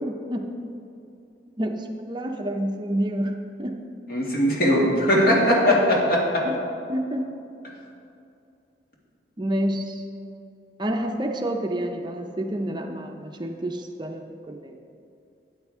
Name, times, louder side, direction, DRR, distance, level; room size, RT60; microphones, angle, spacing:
voice 1, 0.0-0.5 1.6-3.8 6.4-6.6 6.9-7.3 9.4-10.0 10.8-14.8, right 1 dB, 25° right, 4 dB, 0.5 m, -29 dB
voice 2, 4.1-6.2, equal, 55° left, -3 dB, 2.3 m, -19 dB
13.0 x 8.8 x 3.6 m, 2.6 s
head